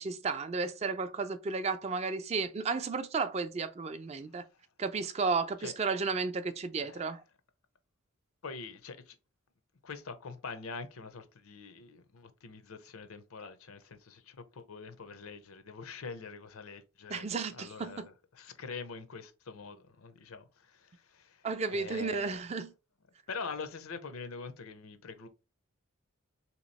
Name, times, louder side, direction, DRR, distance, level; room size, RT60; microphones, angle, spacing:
voice 1, 0.0-4.4 4.8-7.2 17.1-18.1 21.4-22.7, right 4 dB, 30° right, 0.3 m, -33 dB
voice 2, 8.4-9.1 9.8-22.4 23.3-25.3, left 4 dB, 85° left, 0.7 m, -44 dB
3.5 x 2.9 x 4.0 m
head